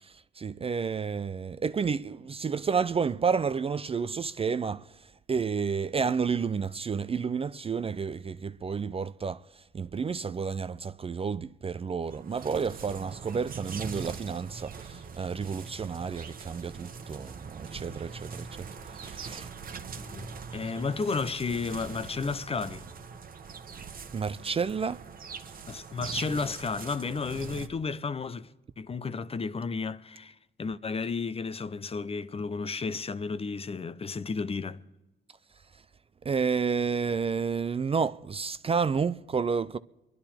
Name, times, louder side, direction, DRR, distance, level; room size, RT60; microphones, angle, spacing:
voice 1, 0.0-19.5 24.1-25.0 36.2-39.8, right 5 dB, 30° right, 0.5 m, -31 dB
sound 1, 12.0-27.7, right 5 dB, 45° right, 1.2 m, -42 dB
voice 2, 20.0-22.9 25.7-28.5 28.8-34.8, left 4 dB, 30° left, 0.7 m, -33 dB
26.0 x 11.5 x 4.4 m
cardioid pair, 90°, 20 cm